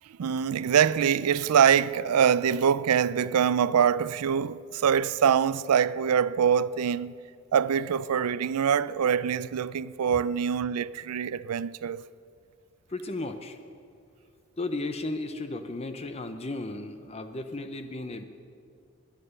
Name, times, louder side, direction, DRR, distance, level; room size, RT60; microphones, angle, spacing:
voice 1, 0.2-7.1 7.5-12.0, right 7 dB, 90° right, 0.4 m, -24 dB
voice 2, 12.9-13.6 14.6-18.2, left 2 dB, 25° left, 0.6 m, -34 dB
21.0 x 8.9 x 6.7 m
head